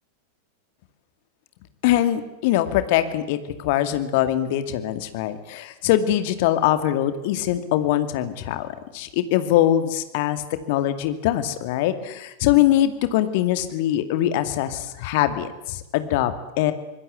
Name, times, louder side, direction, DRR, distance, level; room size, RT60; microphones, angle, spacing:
voice 1, 1.8-8.7 8.9-10.4 10.7-16.7, left 12 dB, 50° left, 10 dB, 2.3 m, -22 dB
25.0 x 21.0 x 8.3 m, 0.97 s
figure-of-eight pair, 90°, 0 cm